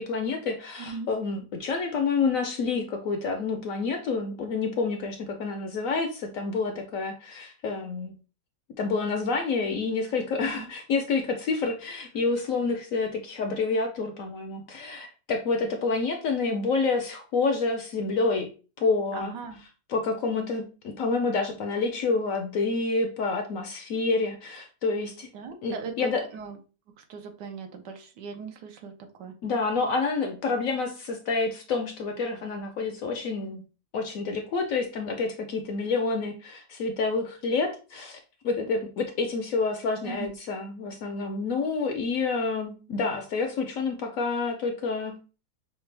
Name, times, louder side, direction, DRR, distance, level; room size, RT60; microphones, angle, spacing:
voice 1, 0.0-8.2 8.8-18.5 18.8-19.4 19.9-25.3 25.6-26.2 29.4-33.6 33.9-45.2, left 4 dB, 65° left, 5 dB, 0.8 m, -28 dB
voice 2, 19.1-19.6 25.3-26.6 27.0-28.9 29.2-29.3 40.0-40.3, right 5 dB, 80° right, 5 dB, 1.4 m, -39 dB
5.9 x 2.3 x 3.2 m, 0.34 s
omnidirectional pair, 1.8 m